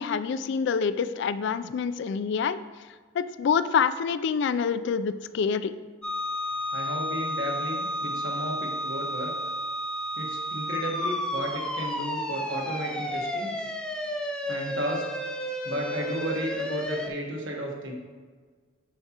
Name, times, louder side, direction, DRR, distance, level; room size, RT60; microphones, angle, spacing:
voice 1, 0.0-2.6 3.1-5.7, left 6 dB, 60° left, 13 dB, 0.3 m, -26 dB
sound 1, 6.0-17.1, equal, 5° left, 0.5 m, -32 dB
voice 2, 6.7-9.3 10.2-13.7 14.5-15.0 15.6-17.9, equal, 65° right, -1 dB, 1.3 m, -33 dB
7.8 x 6.0 x 2.9 m, 1.5 s
head